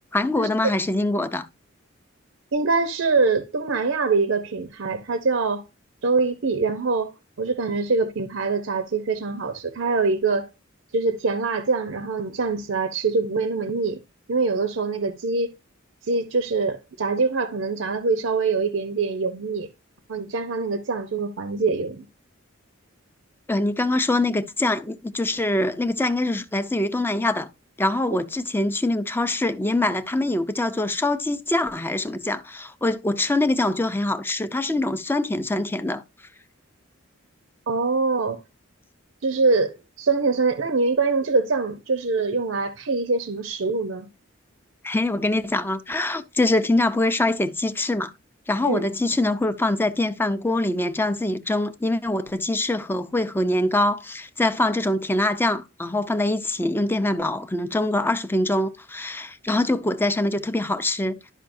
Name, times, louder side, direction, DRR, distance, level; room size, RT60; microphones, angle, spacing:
voice 1, 0.1-1.5 23.5-27.5 27.8-36.0 44.8-48.1 48.5-61.2, left 2 dB, 10° left, 0.5 m, -24 dB
voice 2, 2.5-5.6 6.0-7.1 7.4-10.5 10.9-14.0 14.3-15.5 16.0-19.7 20.1-22.0 37.7-38.4 39.2-44.1 48.6-48.8, right 4 dB, 70° right, 0.7 m, -24 dB
11.5 x 5.4 x 2.6 m
head